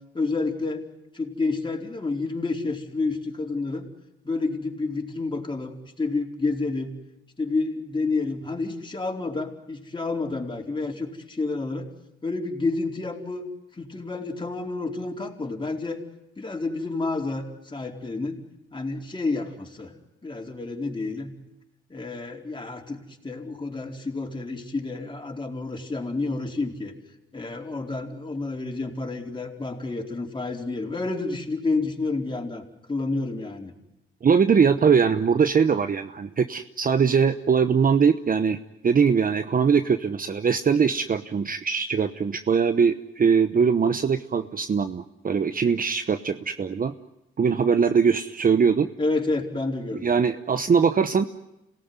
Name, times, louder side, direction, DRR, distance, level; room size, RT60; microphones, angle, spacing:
voice 1, 0.1-0.8 1.1-3.9 4.2-6.9 7.4-11.9 12.2-13.5 13.7-16.0 16.4-18.4 18.7-19.9 20.2-21.3 21.9-26.9 27.3-32.6 32.9-33.7 49.0-50.0, left 3 dB, 25° left, 1 dB, 4.4 m, -29 dB
voice 2, 34.2-46.9 47.4-48.9 50.0-51.3, right 6 dB, 45° right, 10 dB, 1.0 m, -21 dB
27.0 x 18.5 x 9.6 m, 0.92 s
cardioid pair, 70°, 21 cm